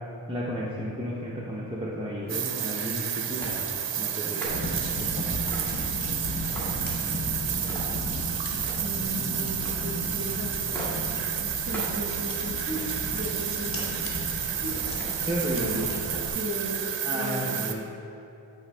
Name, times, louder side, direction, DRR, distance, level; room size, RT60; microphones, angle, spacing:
voice 1, 0.3-3.7 4.0-5.4 15.3-15.9 17.0-17.8, equal, 10° right, -6 dB, 0.6 m, -33 dB
sound 1, 2.2-2.7 3.3-3.6 4.1-4.7 5.4-5.8 6.2-6.9 7.6-8.0 8.4-9.0 9.5-9.9 10.7-11.1 11.7-12.0 12.4-13.1 13.6-14.0 14.6-16.3, equal, 5° left, 1.4 m, -41 dB
sound 2, 2.3-17.7, right 9 dB, 85° right, 0.5 m, -31 dB
sound 3, 4.5-16.3, left 1 dB, 50° left, 1.0 m, -35 dB
voice 2, 8.8-10.7 11.7-14.1 14.4-14.8 15.2-16.0 16.3-17.6, equal, 30° right, -2 dB, 1.2 m, -36 dB
8.7 x 4.1 x 3.3 m, 2.8 s
wide cardioid pair, 90°, 43 cm